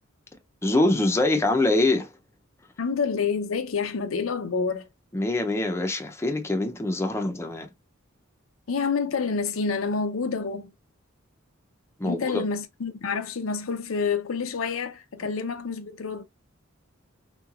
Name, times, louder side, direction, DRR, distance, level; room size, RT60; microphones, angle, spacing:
voice 1, 0.6-2.1 5.1-7.7 12.0-12.4, left 2 dB, 15° left, 0.5 m, -24 dB
voice 2, 2.8-4.9 8.7-10.7 12.0-16.2, left 5 dB, 85° left, 0.6 m, -28 dB
3.6 x 3.1 x 2.3 m
head